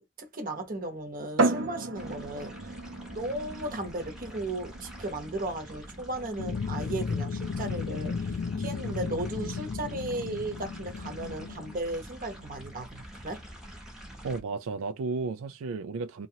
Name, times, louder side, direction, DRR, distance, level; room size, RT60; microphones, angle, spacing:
voice 1, 0.2-2.7 3.1-13.4, right 2 dB, 45° right, 0.9 m, -36 dB
sound 1, 1.4-14.9, right 3 dB, 70° right, 0.7 m, -37 dB
sound 2, 2.0-14.4, equal, 5° right, 0.9 m, -46 dB
sound 3, 6.4-11.9, left 5 dB, 85° left, 0.4 m, -34 dB
voice 2, 14.2-16.3, right 4 dB, 90° right, 0.3 m, -33 dB
2.8 x 2.7 x 2.8 m
head